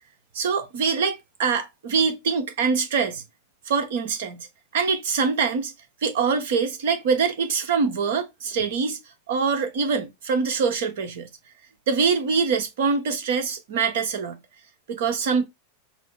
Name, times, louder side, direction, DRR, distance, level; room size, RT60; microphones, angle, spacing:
voice 1, 0.3-3.2 3.7-4.5 4.7-5.7 6.0-9.0 9.3-11.3 11.9-14.4 14.9-15.5, right 5 dB, 55° right, 1.1 m, -24 dB
4.7 x 2.0 x 4.4 m
figure-of-eight pair, 90°, 0 cm